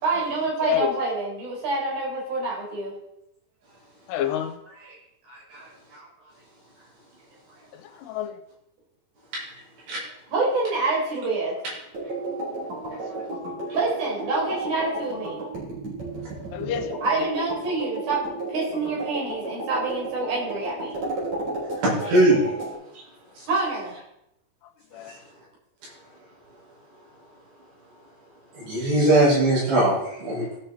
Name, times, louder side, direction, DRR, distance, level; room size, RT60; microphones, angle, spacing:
voice 1, 0.0-2.9 4.7-5.0 5.2-6.1 10.3-11.6 13.7-15.5 17.0-18.2 18.5-21.0 23.5-23.9, right 3 dB, 60° right, -4 dB, 5.7 m, -27 dB
voice 2, 4.1-4.6 8.0-8.3 13.1-13.3 16.5-17.2 24.9-25.1, left 10 dB, 90° left, 7 dB, 2.9 m, -28 dB
sound 1, 11.9-22.7, right 2 dB, 40° right, 4.8 m, -33 dB
voice 3, 21.8-22.4 22.9-23.0 23.4-23.5 25.1-25.2 28.5-30.6, right 1 dB, 80° right, -7 dB, 7.2 m, -20 dB
17.5 x 5.9 x 4.1 m, 0.80 s
omnidirectional pair, 4.9 m